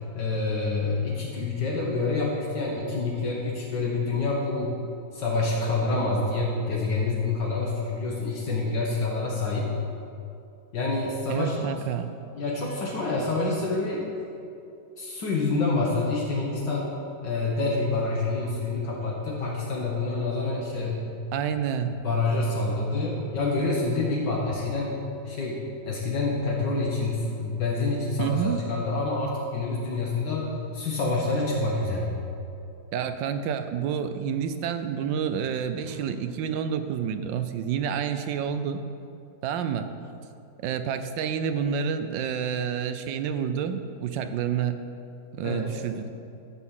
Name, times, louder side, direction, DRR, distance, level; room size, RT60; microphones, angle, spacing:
voice 1, 0.2-4.8 5.1-9.7 10.7-11.7 12.4-14.1 15.0-16.9 17.2-21.0 21.9-25.0 25.3-32.1 45.4-45.8, left 3 dB, 70° left, -3 dB, 1.8 m, -27 dB
voice 2, 11.3-12.1 21.3-21.9 28.2-28.6 32.9-38.8 39.4-39.9 40.6-44.8 45.3-46.1, right 7 dB, 85° right, 9 dB, 1.3 m, -29 dB
12.5 x 4.2 x 7.2 m, 2.7 s
omnidirectional pair, 2.0 m